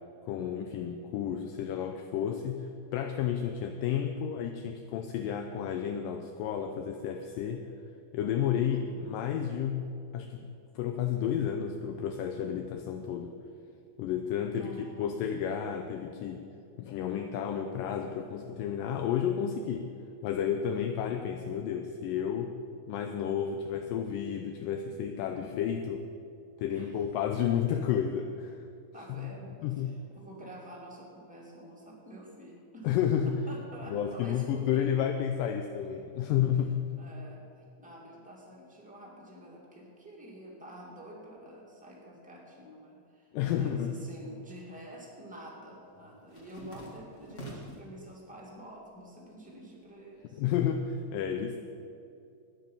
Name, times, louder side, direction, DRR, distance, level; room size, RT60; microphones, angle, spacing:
voice 1, 0.3-7.6 8.1-9.8 10.1-10.5 10.8-13.3 14.0-16.4 16.8-19.9 20.2-22.5 22.9-26.0 26.6-28.6 29.1-29.3 29.6-29.9 32.8-33.4 33.9-36.9 43.3-44.0 50.4-51.6, left 9 dB, 80° left, 5 dB, 2.1 m, -31 dB
voice 2, 8.6-9.1 14.5-15.2 26.7-26.9 28.9-32.9 33.5-35.1 37.0-50.4, right 1 dB, 5° right, -4 dB, 1.5 m, -48 dB
sound 1, 45.1-47.9 48.4-49.0 49.3-51.0, equal, 45° left, 0.9 m, -48 dB
14.0 x 10.0 x 5.5 m, 2.6 s
omnidirectional pair, 4.2 m